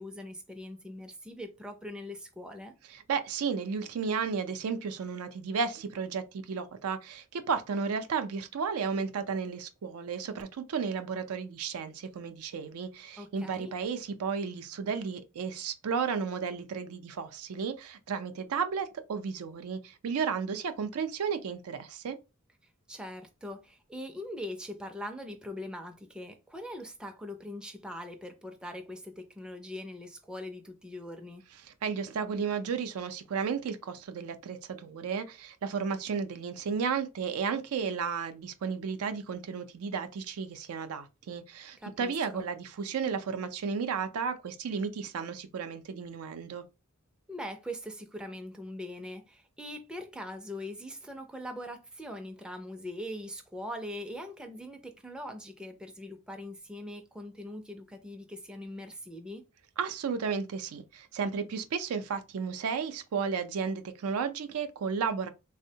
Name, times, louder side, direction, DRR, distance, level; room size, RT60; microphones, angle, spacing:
voice 1, 0.0-2.7 13.2-13.7 22.9-31.4 41.8-42.4 47.3-59.4, left 1 dB, 5° right, 0.3 m, -42 dB
voice 2, 2.9-22.2 31.6-46.6 59.8-65.3, right 6 dB, 90° right, 0.4 m, -33 dB
3.4 x 2.0 x 2.7 m
head